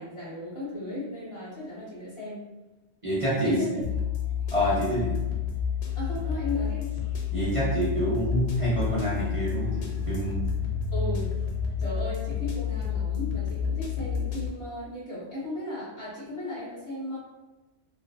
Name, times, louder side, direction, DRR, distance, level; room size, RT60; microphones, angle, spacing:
voice 1, 0.0-2.4 3.4-3.8 5.9-7.0 10.9-11.3 11.8-17.2, left 2 dB, 35° left, -11 dB, 0.7 m, -35 dB
voice 2, 3.0-3.6 4.5-5.1 7.3-10.5, equal, 35° right, -9 dB, 0.8 m, -27 dB
sound 1, 3.8-14.5, left 8 dB, 80° left, 0.9 m, -30 dB
sound 2, 5.4-11.8, right 5 dB, 80° right, 1.0 m, -39 dB
2.6 x 2.5 x 2.5 m, 1.1 s
omnidirectional pair, 1.1 m